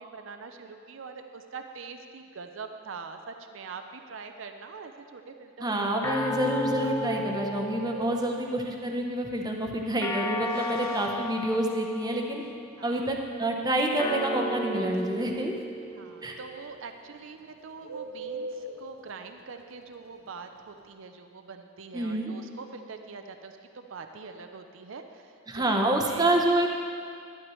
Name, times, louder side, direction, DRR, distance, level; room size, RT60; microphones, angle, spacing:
voice 1, 0.0-6.4 6.7-6.8 11.1-11.2 12.8-13.1 15.9-26.3, right 5 dB, 60° right, 6 dB, 0.5 m, -44 dB
voice 2, 5.6-12.4 12.8-15.5 16.2-16.4 21.9-22.3 25.5-26.7, right 1 dB, 20° right, 1 dB, 0.8 m, -27 dB
sound 1, 6.0-8.6 10.0-12.5 14.0-16.6, left 2 dB, 15° left, 0.3 m, -34 dB
Bird, 7.9-20.9, right 2 dB, 85° right, 0.9 m, -44 dB
12.0 x 11.0 x 3.1 m, 2.3 s
head